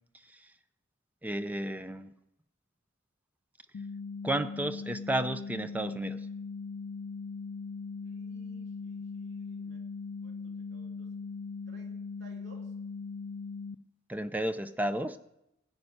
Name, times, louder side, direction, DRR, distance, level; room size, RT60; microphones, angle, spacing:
voice 1, 1.2-2.1 4.2-6.2 14.1-15.2, right 1 dB, 10° right, 11 dB, 0.4 m, -32 dB
sound 1, 3.7-13.8, left 4 dB, 85° left, 0.4 m, -40 dB
voice 2, 8.0-9.8 10.2-11.1 11.7-12.7, right 1 dB, 65° right, 0 dB, 2.8 m, -59 dB
16.0 x 5.3 x 9.6 m, 0.84 s
head